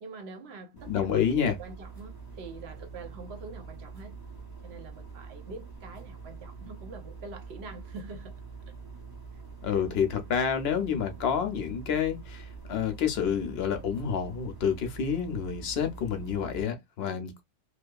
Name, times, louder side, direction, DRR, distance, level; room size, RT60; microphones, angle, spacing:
voice 1, 0.0-4.2 4.6-8.4, right 3 dB, 60° right, 0.9 m, -45 dB
sound 1, 0.8-16.6, right 5 dB, 20° right, 0.8 m, -45 dB
voice 2, 0.9-1.5 9.6-17.4, left 7 dB, 60° left, 0.8 m, -28 dB
2.7 x 2.3 x 2.3 m
omnidirectional pair, 1.3 m